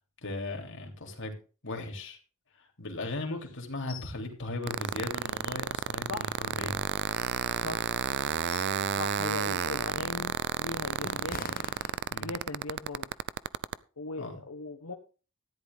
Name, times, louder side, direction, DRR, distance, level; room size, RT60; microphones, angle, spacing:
voice 1, 0.2-1.3 1.6-2.2 2.5-6.8 7.1-7.6 12.1-12.3 14.2-14.4, left 2 dB, 60° left, 2 dB, 3.2 m, -38 dB
sound 1, 3.9-4.2 4.6-4.7 5.1-6.0 6.5-7.5 8.1-8.9 9.3-9.5 10.1-12.5 12.9-13.1, left 4 dB, 40° left, 1.0 m, -46 dB
sound 2, 4.6-13.7, right 7 dB, 55° right, 0.5 m, -31 dB
voice 2, 6.1-6.4 7.6-7.9 8.9-11.4 12.2-13.1 14.0-14.9, left 3 dB, 80° left, 2 dB, 1.4 m, -39 dB
13.5 x 11.0 x 3.6 m, 0.35 s
head